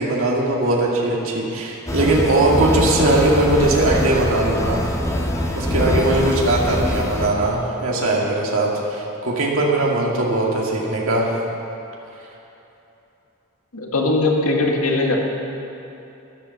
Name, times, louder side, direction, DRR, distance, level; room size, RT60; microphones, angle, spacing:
voice 1, 0.0-4.9 5.5-11.3, right 2 dB, 70° right, -3 dB, 2.3 m, -20 dB
sound 1, 1.9-7.3, left 1 dB, 15° left, 1.0 m, -23 dB
voice 2, 13.7-15.2, left 2 dB, 80° left, 0 dB, 1.9 m, -20 dB
12.0 x 11.5 x 7.1 m, 3.0 s
head